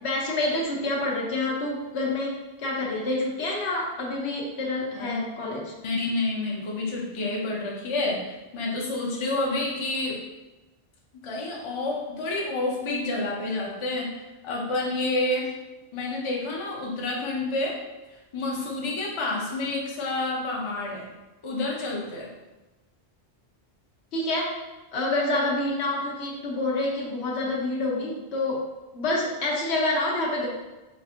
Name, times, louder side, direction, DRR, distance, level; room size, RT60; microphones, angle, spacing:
voice 1, 0.0-5.7 24.1-24.5 24.9-28.7 28.9-30.5, left 2 dB, 75° left, -2 dB, 1.0 m, -27 dB
voice 2, 5.8-10.2 11.2-15.5 15.9-17.8 18.3-21.1 21.4-22.3, left 2 dB, 35° left, -2 dB, 0.5 m, -29 dB
4.1 x 2.5 x 2.7 m, 1.1 s
omnidirectional pair, 1.1 m